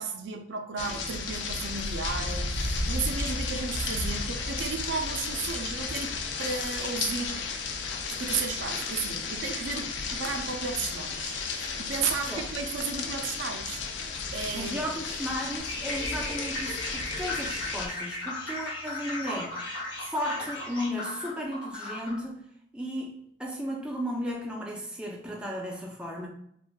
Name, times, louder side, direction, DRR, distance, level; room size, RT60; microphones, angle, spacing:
voice 1, 0.0-7.5 8.2-13.8 14.3-14.9, right 5 dB, 80° right, 5 dB, 0.4 m, -34 dB
sound 1, 0.8-17.9, left 4 dB, 75° left, 0.4 m, -33 dB
voice 2, 14.5-19.6 20.0-22.4 22.7-23.1 23.4-26.3, equal, 5° right, -2 dB, 0.3 m, -34 dB
sound 2, 15.6-20.9, left 2 dB, 25° left, 0.7 m, -42 dB
sound 3, 15.8-22.2, left 2 dB, 90° left, 0.9 m, -37 dB
3.2 x 2.5 x 2.2 m, 0.71 s
head